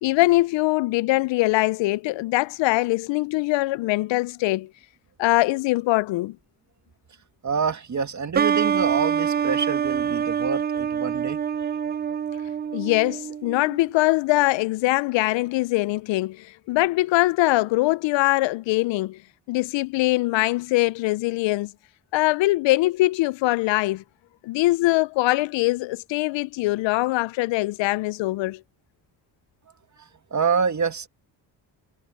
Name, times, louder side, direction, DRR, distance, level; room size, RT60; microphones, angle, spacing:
voice 1, 0.0-4.7 5.2-6.4 12.7-19.2 19.5-21.7 22.1-24.0 24.4-28.6, left 19 dB, 85° left, 0.5 m, -22 dB
voice 2, 7.4-11.4 30.3-31.1, right 6 dB, 40° right, 2.0 m, -26 dB
sound 1, 8.3-13.8, right 7 dB, 25° right, 0.3 m, -25 dB
cardioid pair, 70°, 43 cm